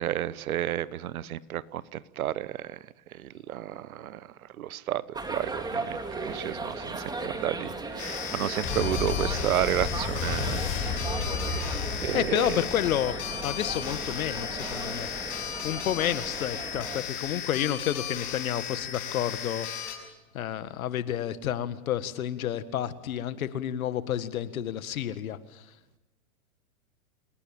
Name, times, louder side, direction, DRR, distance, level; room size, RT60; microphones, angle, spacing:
voice 1, 0.0-2.7 3.2-4.2 4.6-12.6, right 12 dB, 75° right, 19 dB, 1.1 m, -32 dB
sound 1, 5.1-17.0, right 3 dB, 10° right, 2.7 m, -37 dB
sound 2, 8.0-19.9, left 9 dB, 50° left, 7.8 m, -36 dB
sound 3, 8.6-17.4 18.2-18.3, left 5 dB, 30° left, 7.1 m, -35 dB
voice 2, 12.1-15.1 15.6-19.9 20.3-25.6, left 11 dB, 70° left, 13 dB, 1.8 m, -30 dB
28.0 x 18.5 x 8.8 m, 1.0 s
hypercardioid pair, 120°, 43 cm